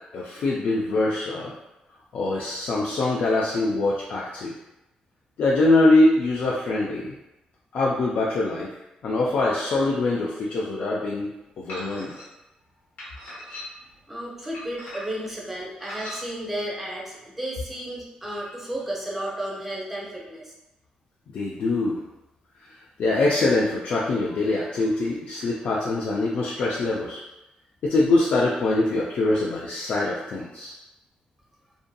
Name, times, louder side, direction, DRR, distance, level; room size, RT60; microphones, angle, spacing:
voice 1, 0.1-1.5 2.1-4.5 5.4-7.2 7.7-8.7 9.0-12.1 21.3-22.0 22.6-22.7 23.0-27.2 27.8-30.7, left 2 dB, 60° left, -4 dB, 0.3 m, -23 dB
sound 1, 11.7-12.3 13.0-13.9 14.5-15.3 15.8-16.2, left 1 dB, 80° left, 1.0 m, -39 dB
voice 2, 14.1-20.5, right 1 dB, 10° right, -4 dB, 0.6 m, -33 dB
2.6 x 2.5 x 2.2 m, 0.94 s
cardioid pair, 135°, 3 cm